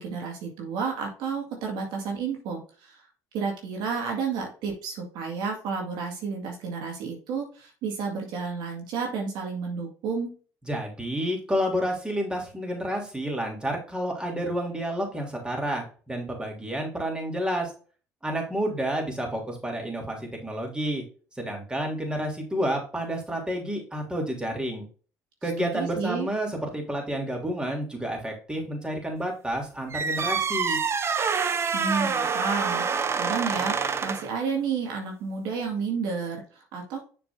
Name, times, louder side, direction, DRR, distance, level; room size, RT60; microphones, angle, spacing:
voice 1, 0.0-3.0 3.3-10.3 25.6-26.3 31.7-32.8 33.1-33.8 34.0-37.0, right 5 dB, 70° right, 1 dB, 2.0 m, -31 dB
voice 2, 10.7-17.7 18.2-21.0 21.4-24.8 25.4-30.8, equal, 10° right, 1 dB, 3.1 m, -30 dB
sound 1, 29.9-34.4, right 5 dB, 35° right, 0.7 m, -26 dB
7.1 x 5.9 x 2.7 m, 0.39 s
hypercardioid pair, 70°, 8 cm